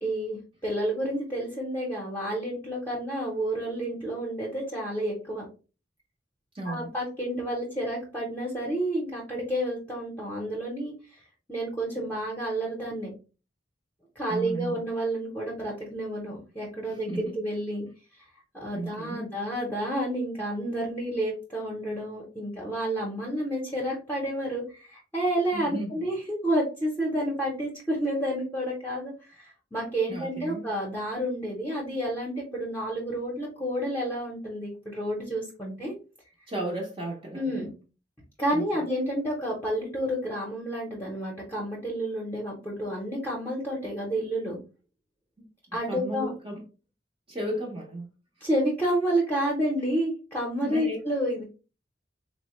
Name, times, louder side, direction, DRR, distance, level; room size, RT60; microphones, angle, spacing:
voice 1, 0.0-5.4 6.6-10.9 11.5-13.1 14.2-17.9 18.6-35.9 37.3-37.7 38.4-44.6 45.7-46.3 48.4-51.4, right 1 dB, 10° left, 0.7 m, -30 dB
voice 2, 6.5-6.9 14.3-14.8 16.8-17.3 18.7-19.3 25.5-26.0 30.1-30.7 36.5-37.7 38.5-38.6 45.4-45.5 45.9-46.6 47.3-48.1 50.6-51.0, right 1 dB, 30° right, 0.6 m, -34 dB
3.9 x 2.1 x 2.9 m
head